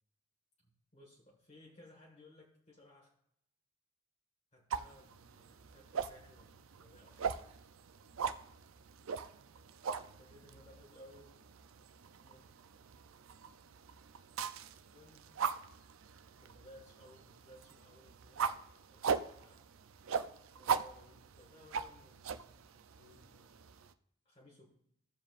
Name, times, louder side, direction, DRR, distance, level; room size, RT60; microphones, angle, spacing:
voice 1, 0.6-3.1 4.5-7.7 8.0-8.3 10.0-11.3 12.2-12.5 14.4-14.5 14.9-15.4 16.4-18.6 18.9-19.6 20.5-23.7 24.2-24.7, left 1 dB, 30° left, -2 dB, 1.5 m, -60 dB
sound 1, 4.7-23.9, right 6 dB, 70° right, 0.5 m, -41 dB
15.5 x 7.4 x 2.5 m, 0.74 s
head